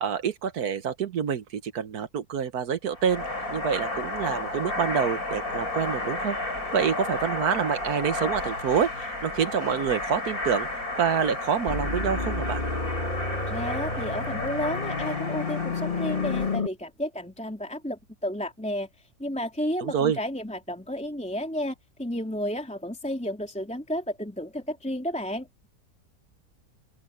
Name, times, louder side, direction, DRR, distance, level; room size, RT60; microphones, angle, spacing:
voice 1, 0.0-6.4 6.7-10.7 11.0-12.6 19.8-20.2, right 7 dB, 75° right, 1.6 m, -27 dB
sound 1, 2.9-16.5, left 2 dB, 65° left, 7.1 m, -32 dB
sound 2, 11.7-16.7, left 3 dB, 30° left, 2.6 m, -30 dB
voice 2, 13.5-18.9 19.2-25.5, equal, 5° left, 3.2 m, -32 dB
open air
omnidirectional pair, 1.6 m